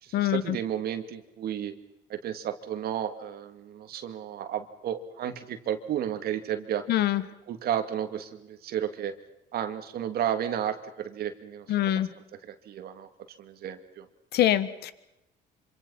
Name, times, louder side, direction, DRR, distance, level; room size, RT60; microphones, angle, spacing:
voice 1, 0.0-1.7 2.1-6.8 7.5-9.1 9.5-12.1 12.4-13.1 13.4-14.1, right 10 dB, 65° right, 8 dB, 2.4 m, -33 dB
voice 2, 6.9-7.2 11.7-12.1 14.3-14.9, left 12 dB, 75° left, 14 dB, 1.7 m, -24 dB
26.5 x 25.5 x 5.7 m, 0.90 s
cardioid pair, 110°, 17 cm